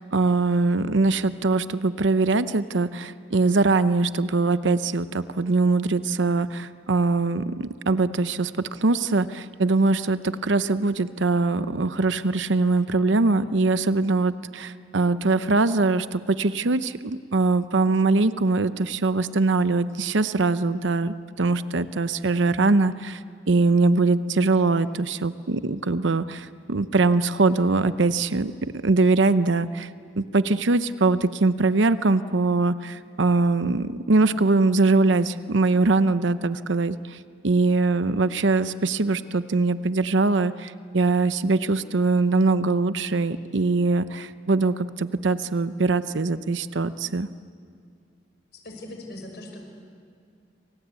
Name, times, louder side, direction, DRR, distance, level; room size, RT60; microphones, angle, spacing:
voice 1, 0.0-23.2 23.5-28.5 28.8-29.9 30.2-47.3, right 3 dB, 85° right, 13 dB, 0.8 m, -22 dB
voice 2, 48.5-49.6, left 1 dB, 60° left, 2 dB, 5.5 m, -40 dB
28.0 x 25.5 x 8.3 m, 2.4 s
head